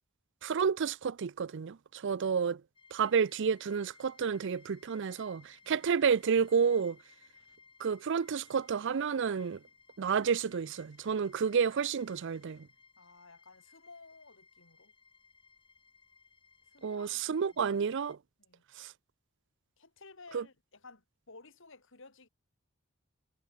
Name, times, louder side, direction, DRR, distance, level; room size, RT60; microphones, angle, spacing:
voice 1, 0.4-2.6 2.9-7.0 7.8-9.6 10.0-12.7 16.8-18.2 18.8-18.9 20.3-20.4, right 6 dB, 60° right, 0.5 m, -30 dB
voice 2, 2.0-2.3 5.6-5.9 13.0-14.9 16.6-17.7 18.4-18.6 19.8-22.3, left 3 dB, 65° left, 3.8 m, -55 dB
sound 1, 2.8-18.2, left 4 dB, 25° left, 5.0 m, -62 dB
head